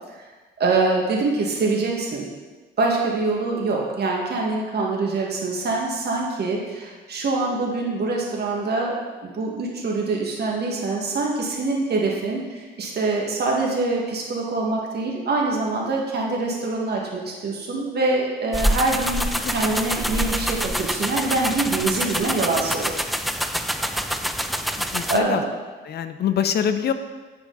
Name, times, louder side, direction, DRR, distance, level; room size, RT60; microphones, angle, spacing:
voice 1, 0.6-2.3 2.8-9.0 9.2-19.2 19.5-22.9 25.1-25.5, right 3 dB, 55° right, -1 dB, 1.7 m, -24 dB
sound 1, 18.5-25.2, equal, ahead, 0.4 m, -26 dB
voice 2, 24.8-25.4 25.8-26.9, left 8 dB, 55° left, 9 dB, 0.6 m, -24 dB
9.5 x 4.8 x 3.9 m, 1.3 s
cardioid pair, 90°, 20 cm